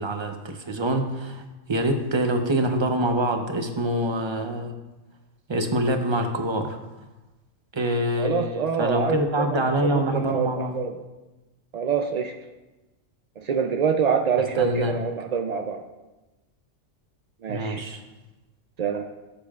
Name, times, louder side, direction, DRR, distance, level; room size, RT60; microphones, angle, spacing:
voice 1, 0.0-4.7 5.5-6.8 7.7-10.8 14.6-15.0 17.5-18.0, right 1 dB, 30° right, 5 dB, 0.6 m, -25 dB
voice 2, 8.2-9.6 9.9-11.0 11.7-12.3 13.4-15.8 17.4-17.8 18.8-19.1, right 6 dB, 70° right, 4 dB, 0.3 m, -26 dB
14.0 x 6.9 x 2.4 m, 1.1 s
omnidirectional pair, 1.3 m